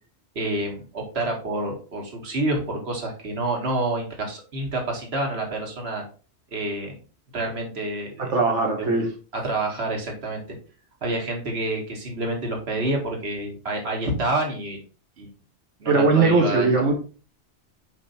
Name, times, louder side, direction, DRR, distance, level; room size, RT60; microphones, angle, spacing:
voice 1, 0.4-6.0 6.5-7.0 7.3-8.3 8.8-9.0 9.3-10.6 11.0-14.8 15.2-15.3 15.8-16.7, right 2 dB, 65° right, 1 dB, 1.9 m, -28 dB
voice 2, 8.3-9.1 15.9-16.9, right 3 dB, 90° right, 1 dB, 1.5 m, -19 dB
5.1 x 4.8 x 4.0 m, 0.36 s
omnidirectional pair, 1.2 m